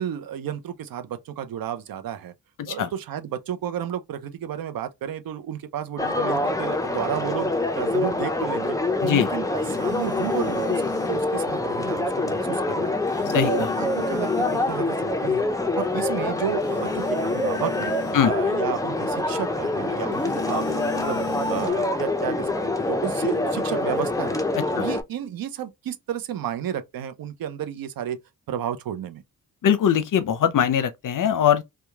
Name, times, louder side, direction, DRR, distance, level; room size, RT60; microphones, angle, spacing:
voice 1, 0.0-2.3 2.7-8.8 9.0-10.8 11.1-12.9 13.2-14.3 14.7-15.5 15.8-17.9 18.2-21.2 21.5-24.4 24.7-28.2 28.5-29.2, right 9 dB, 65° right, 0.5 m, -32 dB
voice 2, 2.6-2.9 9.0-9.3 13.3-13.7 18.1-18.3 24.5-24.9 29.6-31.6, left 9 dB, 55° left, 0.6 m, -22 dB
sound 1, 6.0-25.0, left 2 dB, 10° left, 0.4 m, -25 dB
sound 2, 9.6-11.3 13.1-14.8 16.6-18.3 20.1-21.7, left 6 dB, 30° left, 1.0 m, -36 dB
2.9 x 2.2 x 2.2 m
supercardioid pair, 50°, 38 cm